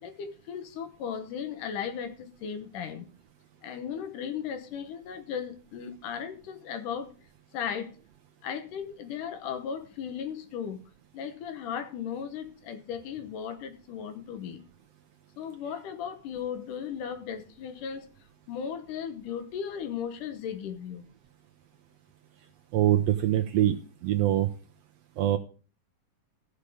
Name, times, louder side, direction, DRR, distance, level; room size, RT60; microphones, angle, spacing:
voice 1, 0.0-3.1 3.6-7.1 7.5-8.0 8.4-10.8 11.1-14.6 15.4-18.1 18.5-21.1, left 7 dB, 80° left, 2.7 m, -36 dB
voice 2, 22.7-24.5 25.2-25.4, right 13 dB, 75° right, 1.6 m, -24 dB
15.0 x 6.6 x 5.0 m
omnidirectional pair, 3.6 m